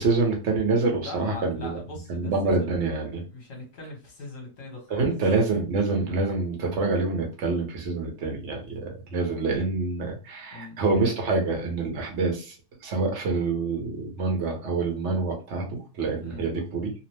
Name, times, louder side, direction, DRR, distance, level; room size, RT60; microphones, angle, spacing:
voice 1, 0.0-1.8 2.1-3.2 4.9-12.6 12.8-16.9, right 3 dB, 55° right, 2 dB, 0.9 m, -26 dB
voice 2, 1.0-2.7 3.3-5.1 10.5-10.8 16.1-16.5, left 2 dB, 55° left, 0 dB, 1.3 m, -41 dB
2.8 x 2.0 x 3.1 m, 0.34 s
omnidirectional pair, 1.8 m